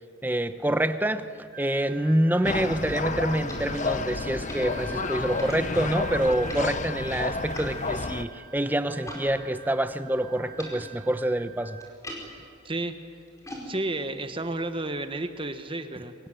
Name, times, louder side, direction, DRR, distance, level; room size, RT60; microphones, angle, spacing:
voice 1, 0.2-1.3 1.6-11.8, right 1 dB, 10° right, 10 dB, 0.8 m, -26 dB
Wind instrument woodwind instrument, 1.5-11.9, right 5 dB, 45° right, 4.1 m, -44 dB
sound 1, 2.4-8.2, left 3 dB, 40° left, 0.8 m, -31 dB
sound 2, 2.8-9.3 9.5-15.4, left 1 dB, 15° left, 4.7 m, -46 dB
voice 2, 13.7-16.1, right 2 dB, 25° right, 9 dB, 1.3 m, -31 dB
24.0 x 21.0 x 9.1 m, 2.5 s
head